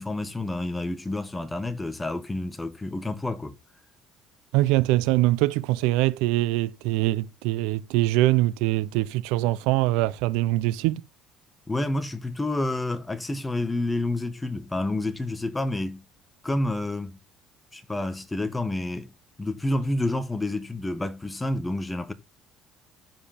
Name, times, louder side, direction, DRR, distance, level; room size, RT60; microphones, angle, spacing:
voice 1, 0.0-3.5 11.7-16.0 16.4-17.2 17.7-19.1 19.4-22.1, left 2 dB, 15° left, 1.6 m, -29 dB
voice 2, 4.5-11.0, right 17 dB, 85° right, 0.7 m, -23 dB
13.5 x 5.1 x 4.3 m
supercardioid pair, 95°, 0 cm